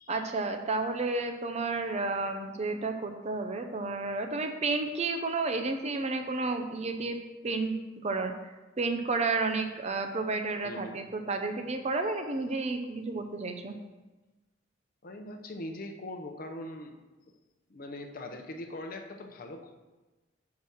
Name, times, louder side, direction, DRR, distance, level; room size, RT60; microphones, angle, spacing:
voice 1, 0.1-7.2 7.4-13.8, right 3 dB, 35° right, 6 dB, 0.5 m, -31 dB
voice 2, 10.6-11.0 15.0-17.0 17.7-19.7, left 1 dB, 45° left, 4 dB, 0.7 m, -41 dB
5.9 x 4.8 x 5.5 m, 1.2 s
head